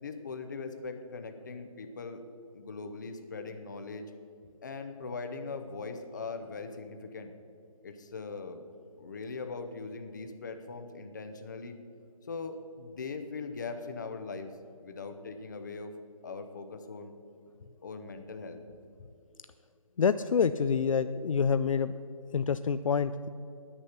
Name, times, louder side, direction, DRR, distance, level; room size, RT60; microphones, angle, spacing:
voice 1, 0.0-2.2 2.5-4.1 4.6-7.3 7.8-8.6 9.0-11.8 12.3-14.5 14.8-15.9 16.2-17.1 17.8-18.8, left 4 dB, 30° left, 8 dB, 0.7 m, -40 dB
voice 2, 20.0-21.9 22.3-23.3, left 6 dB, 65° left, 12 dB, 0.4 m, -27 dB
10.0 x 9.8 x 5.7 m, 2.6 s
hypercardioid pair, 170°, 18 cm